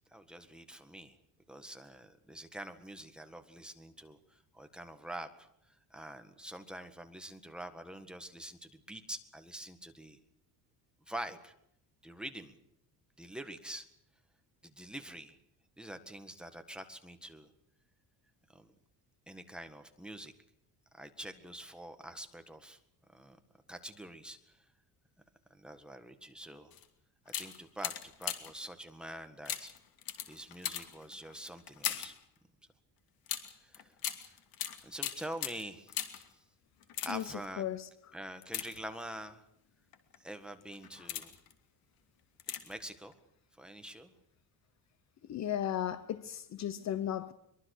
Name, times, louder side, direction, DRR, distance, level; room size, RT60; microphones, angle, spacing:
voice 1, 0.1-1.2 1.5-10.2 11.1-11.5 12.0-12.6 13.2-13.9 14.6-15.4 15.8-17.5 18.5-18.7 19.3-20.3 20.9-22.8 23.1-23.4 23.7-24.6 25.6-26.7 27.4-29.7 30.3-32.1 33.6-33.9 34.8-36.2 37.0-37.6 38.1-39.4 40.2-41.3 42.6-43.1 43.6-44.1, right 1 dB, ahead, 1.7 m, -46 dB
sound 1, 26.7-26.9 27.3-28.6 29.5-32.2 33.3-36.3 36.8-37.5 38.4-39.3 39.9-40.2 40.7-41.5 42.4-42.9 43.1-43.2, left 10 dB, 60° left, 2.8 m, -40 dB
voice 2, 37.6-37.9 45.3-47.3, left 10 dB, 40° left, 0.9 m, -35 dB
23.5 x 23.0 x 6.6 m
cardioid pair, 175°, 40 cm